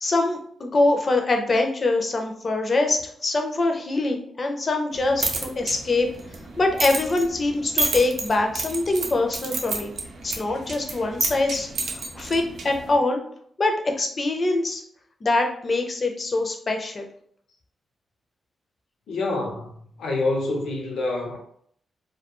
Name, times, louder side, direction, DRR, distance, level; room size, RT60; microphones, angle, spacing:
voice 1, 0.0-6.1 6.6-9.9 10.2-13.2 13.6-14.8 15.2-17.1, left 2 dB, 35° left, 0.4 m, -24 dB
sound 1, 4.9-13.0, right 3 dB, 70° right, 0.5 m, -31 dB
voice 2, 19.1-19.7 20.0-21.4, left 2 dB, 85° left, 0.6 m, -26 dB
2.2 x 2.2 x 2.9 m
wide cardioid pair, 125°, 0 cm